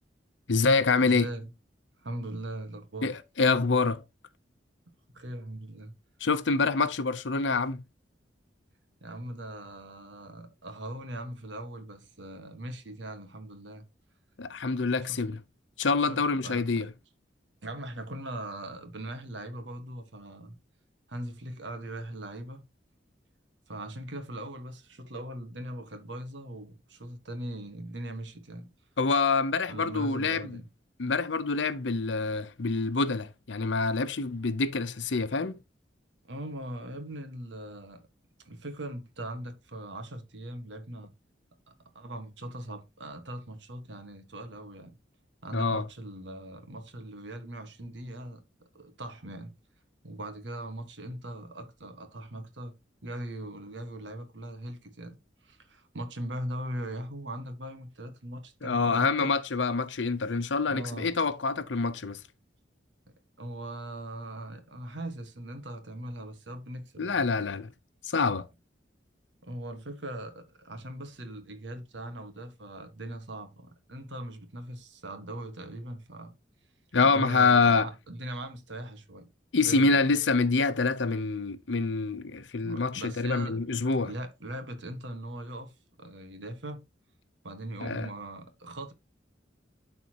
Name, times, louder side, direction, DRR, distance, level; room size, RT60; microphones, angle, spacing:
voice 1, 0.5-1.3 3.0-4.0 6.2-7.8 14.4-15.4 15.8-16.9 29.0-30.6 31.0-35.6 45.5-45.9 58.6-62.2 67.0-67.7 68.0-68.5 76.9-77.9 79.5-84.1 87.8-88.1, left 4 dB, 80° left, 0.7 m, -26 dB
voice 2, 1.0-1.5 2.0-3.2 5.1-5.9 9.0-13.9 15.0-15.2 16.0-16.8 17.6-20.6 21.1-22.6 23.7-28.7 29.7-30.7 36.2-38.0 38.4-41.1 41.7-45.0 45.4-48.4 48.7-49.5 50.0-52.8 53.0-59.3 60.7-61.1 63.4-67.2 69.4-76.3 77.0-79.3 79.6-80.0 82.6-83.6 84.0-86.8 87.4-88.9, right 1 dB, 75° right, 1.6 m, -40 dB
12.0 x 4.2 x 2.9 m
head